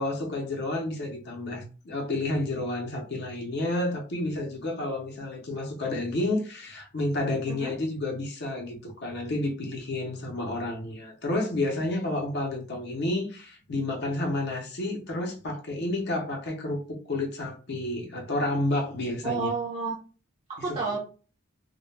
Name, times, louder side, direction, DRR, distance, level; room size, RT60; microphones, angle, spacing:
voice 1, 0.0-19.5 20.7-20.8, left 2 dB, 50° left, 1 dB, 0.5 m, -30 dB
voice 2, 19.2-20.0 20.5-21.0, right 4 dB, 30° right, -5 dB, 0.5 m, -30 dB
2.1 x 2.0 x 3.1 m, 0.37 s
head